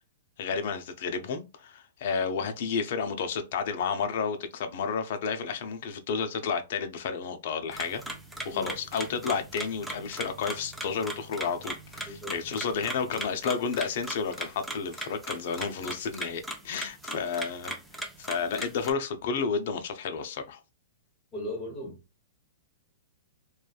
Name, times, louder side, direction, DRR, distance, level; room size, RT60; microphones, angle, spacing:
voice 1, 0.4-8.0 8.4-20.6, left 5 dB, 55° left, 0.5 m, -31 dB
sound 1, 7.7-18.9, right 1 dB, ahead, 0.4 m, -39 dB
voice 2, 12.1-12.4 21.3-22.0, left 1 dB, 15° left, 1.1 m, -38 dB
3.0 x 2.3 x 2.3 m
hypercardioid pair, 160°, 0 cm